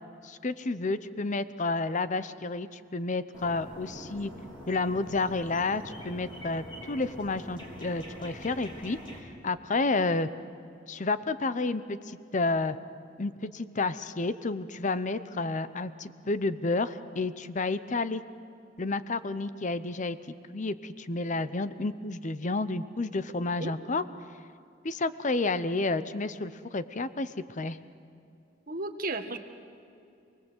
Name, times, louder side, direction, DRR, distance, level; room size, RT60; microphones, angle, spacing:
voice 1, 0.2-4.3 4.7-9.0 9.4-10.3 10.9-12.8 13.2-18.2 18.8-20.2 20.5-24.0 24.8-27.8, left 3 dB, 40° left, 14 dB, 0.8 m, -30 dB
sound 1, 3.3-9.2, equal, 25° left, 4.0 m, -44 dB
voice 2, 28.7-29.4, right 2 dB, 45° right, 6 dB, 1.6 m, -33 dB
28.0 x 20.0 x 8.1 m, 2.5 s
head